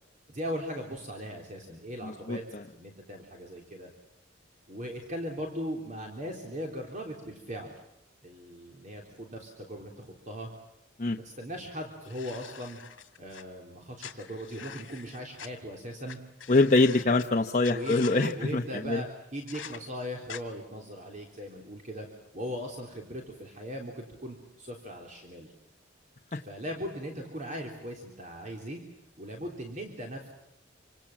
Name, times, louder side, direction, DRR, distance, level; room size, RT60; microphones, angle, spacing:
voice 1, 0.3-2.4 2.7-3.9 4.7-7.8 8.2-10.5 11.2-12.8 13.2-16.2 17.7-22.1 22.3-25.5 26.4-28.8 29.2-30.3, equal, 40° right, 1 dB, 3.6 m, -39 dB
voice 2, 2.0-2.6 11.0-11.2 16.5-19.0 26.3-26.4, left 2 dB, 40° left, 3 dB, 0.9 m, -25 dB
sound 1, 12.0-13.4 14.0-15.5 16.1-16.2 16.4-17.2 17.6-18.3 19.5-19.8 20.3-20.4, left 8 dB, 70° left, 2.2 m, -44 dB
27.5 x 26.0 x 7.4 m, 0.86 s
head